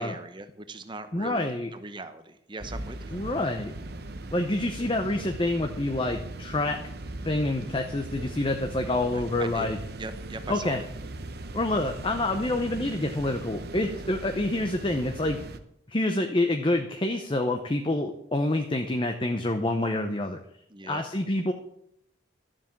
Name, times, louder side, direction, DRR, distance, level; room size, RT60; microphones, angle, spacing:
voice 1, 0.0-3.4 9.1-9.7 10.0-10.8 20.7-21.0, right 2 dB, 25° right, 10 dB, 0.9 m, -40 dB
voice 2, 1.1-1.7 3.1-3.7 4.3-6.8 7.2-9.8 10.5-10.8 11.5-15.4 15.9-20.4 20.8-21.5, left 2 dB, 25° left, 5 dB, 0.7 m, -27 dB
sound 1, 2.6-15.6, right 2 dB, 50° right, 0.9 m, -39 dB
12.5 x 7.6 x 7.3 m, 0.73 s
head